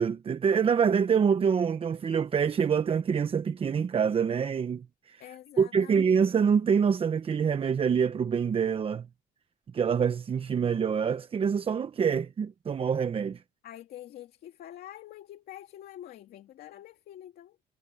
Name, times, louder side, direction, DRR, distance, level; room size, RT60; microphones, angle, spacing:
voice 1, 0.0-5.2 5.6-9.1 9.7-13.4, right 6 dB, 35° right, 0.9 m, -26 dB
voice 2, 5.2-6.2 13.6-17.6, left 12 dB, 65° left, 2.4 m, -46 dB
cardioid pair, 110°, 17 cm